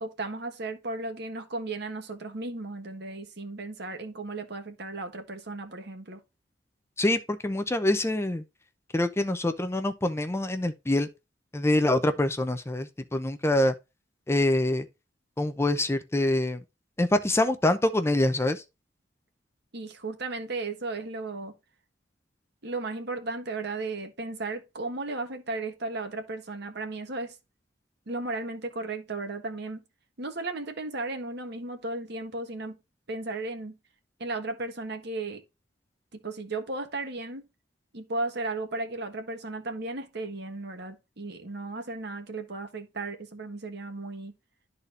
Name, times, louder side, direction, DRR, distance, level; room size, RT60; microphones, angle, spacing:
voice 1, 0.0-6.2 19.7-21.6 22.6-27.4 28.1-29.8 30.2-32.8 33.1-33.8 34.2-35.4 36.1-37.5 37.9-44.3, right 2 dB, 60° right, 1.4 m, -35 dB
voice 2, 7.0-8.4 8.9-11.1 11.5-13.7 14.3-14.9 15.4-16.6 17.0-18.6, left 1 dB, 15° left, 0.6 m, -25 dB
12.5 x 4.2 x 2.5 m
head